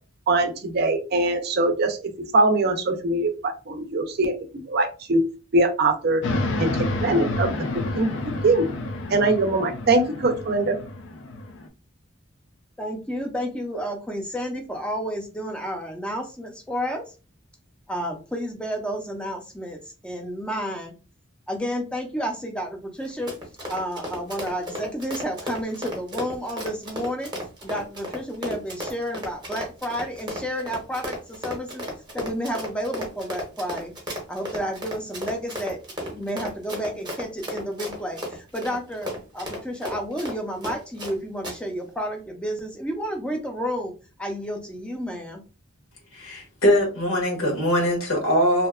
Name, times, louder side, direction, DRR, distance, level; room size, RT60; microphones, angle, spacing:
voice 1, 0.3-4.3 4.7-5.2 5.5-6.2 6.6-8.1 8.4-8.7 9.1-10.8, right 2 dB, 50° right, 6 dB, 0.5 m, -22 dB
sound 1, 6.2-11.7, left 2 dB, 65° left, 0.5 m, -29 dB
voice 2, 12.8-17.0 17.9-21.0 21.5-23.3 23.7-27.3 27.6-31.9 32.1-33.9 34.3-43.9 44.2-45.4, equal, 5° left, 2 dB, 0.5 m, -31 dB
Run, 23.0-41.1 41.4-41.6, equal, 20° right, 0.7 m, -34 dB
voice 3, 46.1-48.7, equal, 85° left, -1 dB, 1.2 m, -22 dB
2.7 x 2.2 x 2.3 m, 0.32 s
head